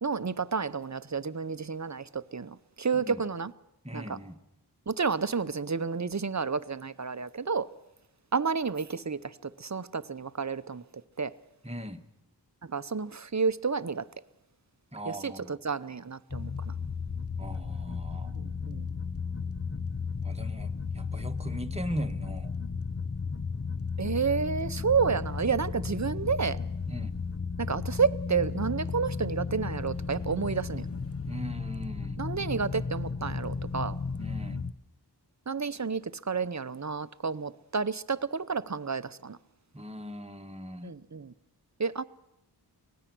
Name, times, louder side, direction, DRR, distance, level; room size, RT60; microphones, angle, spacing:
voice 1, 0.0-3.5 3.9-4.2 4.9-7.7 8.3-10.8 11.2-11.3 12.7-14.0 15.1-16.7 18.4-18.9 24.0-26.6 27.6-30.9 32.2-34.0 35.5-39.4 40.8-41.3 41.8-42.0, right 5 dB, 40° right, 0.8 m, -30 dB
voice 2, 3.8-4.4 11.6-12.0 14.9-15.5 17.4-18.3 20.2-22.5 26.9-27.1 31.3-32.2 34.2-34.6 39.7-40.9, equal, 15° right, 1.5 m, -39 dB
sound 1, 16.3-34.7, left 5 dB, 35° left, 0.9 m, -34 dB
25.0 x 18.5 x 6.1 m
wide cardioid pair, 55°, 43 cm